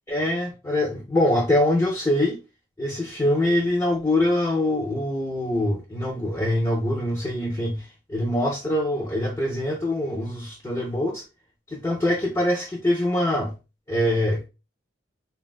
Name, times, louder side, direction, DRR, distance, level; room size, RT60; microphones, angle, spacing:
voice 1, 0.1-2.4 2.8-11.2 11.7-13.5 13.9-14.5, left 1 dB, 15° left, 0.5 m, -24 dB
3.4 x 2.2 x 2.3 m
head